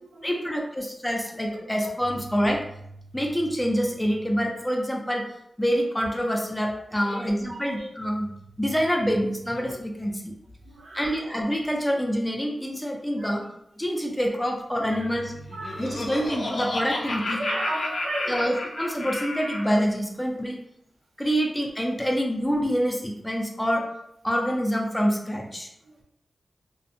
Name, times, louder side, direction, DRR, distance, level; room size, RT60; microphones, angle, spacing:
voice 1, 0.2-2.7 3.1-5.3 5.6-8.3 8.6-10.3 10.9-13.4 13.8-15.4 15.8-17.5 18.3-20.6 21.2-23.9 24.2-25.7, equal, 10° left, 1 dB, 0.4 m, -26 dB
voice 2, 7.0-7.9 9.6-9.7 10.7-11.2 13.2-13.3 14.9-15.0 15.5-16.0 17.4-18.5 18.9-19.0, right 1 dB, 90° right, -3 dB, 0.6 m, -35 dB
Laughter, 15.3-19.8, left 1 dB, 70° left, 0.5 m, -31 dB
2.5 x 2.1 x 2.5 m, 0.75 s
wide cardioid pair, 85°, 0 cm